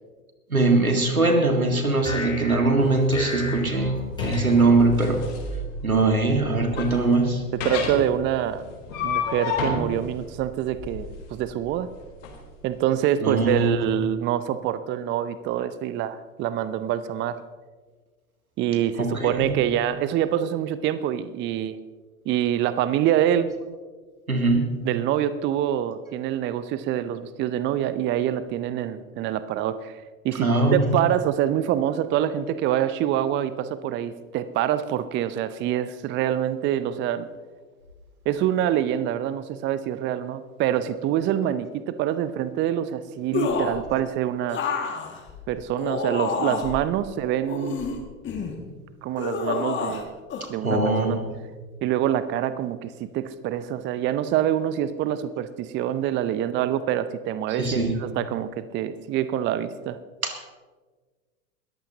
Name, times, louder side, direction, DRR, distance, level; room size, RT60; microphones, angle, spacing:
voice 1, 0.5-4.0 4.2-5.2 5.8-7.4 13.2-13.8 19.0-19.6 24.3-24.7 30.4-30.9 50.6-51.2 57.6-57.9 60.2-60.4, right 2 dB, 90° right, 4 dB, 2.0 m, -21 dB
sound 1, 2.0-5.4, equal, 10° left, 4.4 m, -34 dB
sound 2, 2.8-12.3, left 4 dB, 60° left, 4.0 m, -31 dB
voice 2, 7.5-8.6 9.0-11.9 12.6-17.4 18.6-21.8 22.3-23.5 24.8-37.3 38.3-44.6 45.5-47.8 49.0-50.1 50.5-51.2 51.8-60.0, right 11 dB, 25° right, 14 dB, 0.6 m, -26 dB
sound 3, 43.3-43.8 44.5-46.8 47.5-48.6 49.2-50.0 50.3-50.5, left 5 dB, 25° left, 2.2 m, -28 dB
21.0 x 14.5 x 2.9 m, 1.4 s
figure-of-eight pair, 85°, 41 cm